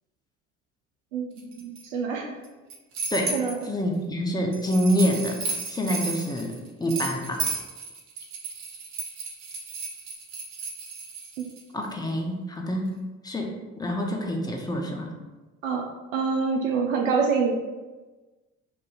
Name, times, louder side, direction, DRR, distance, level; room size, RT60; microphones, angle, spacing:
voice 1, 1.1-2.4 3.3-3.6 11.4-11.5 15.6-15.8 16.1-17.5, right 5 dB, 75° right, 1 dB, 0.5 m, -26 dB
sound 1, 1.4-1.8 2.4-3.7 4.5-11.6, right 4 dB, 60° right, 0.9 m, -33 dB
voice 2, 3.6-6.5 6.8-7.5 11.7-13.0 13.2-15.1, equal, 10° left, 2 dB, 0.7 m, -27 dB
5.9 x 2.5 x 2.4 m, 1.2 s
figure-of-eight pair, 55°, 39 cm